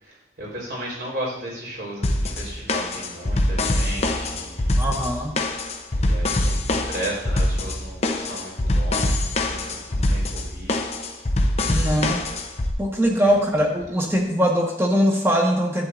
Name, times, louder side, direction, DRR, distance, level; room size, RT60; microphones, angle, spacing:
voice 1, 0.0-4.7 5.9-9.6 9.9-10.8 11.9-12.1, right 1 dB, 65° right, -4 dB, 4.0 m, -35 dB
sound 1, 2.0-12.7, left 1 dB, 35° left, 0.7 m, -23 dB
voice 2, 4.8-5.3 11.7-12.2 12.8-15.9, equal, 15° right, 0 dB, 1.3 m, -21 dB
11.0 x 9.0 x 2.5 m, 0.80 s
head